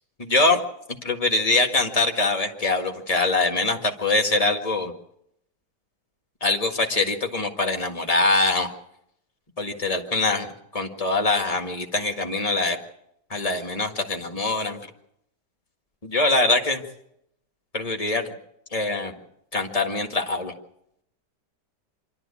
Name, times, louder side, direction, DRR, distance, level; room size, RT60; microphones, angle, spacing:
voice 1, 0.2-0.6 1.0-4.9 6.4-8.7 9.6-12.8 13.3-14.8 16.0-16.8 17.7-18.3 18.7-19.1 19.5-20.5, left 2 dB, 20° left, 3 dB, 1.8 m, -23 dB
25.5 x 12.5 x 8.5 m, 0.78 s
omnidirectional pair, 1.9 m